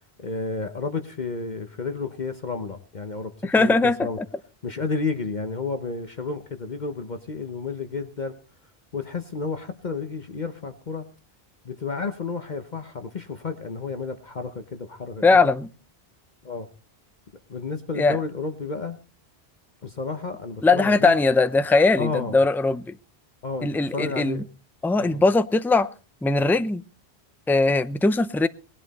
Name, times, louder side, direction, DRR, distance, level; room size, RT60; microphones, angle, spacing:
voice 1, 0.2-4.2 4.6-8.3 8.9-11.0 11.6-15.5 16.4-16.7 17.5-19.0 19.8-21.1 22.0-22.4 23.4-24.4 25.0-25.2, left 4 dB, 45° left, 1.1 m, -31 dB
voice 2, 3.4-4.1 15.2-15.7 18.0-18.2 20.6-22.9 23.6-24.4 24.8-25.9 26.2-26.8 27.5-28.5, left 3 dB, 5° left, 0.4 m, -20 dB
19.0 x 11.0 x 4.1 m
omnidirectional pair, 1.1 m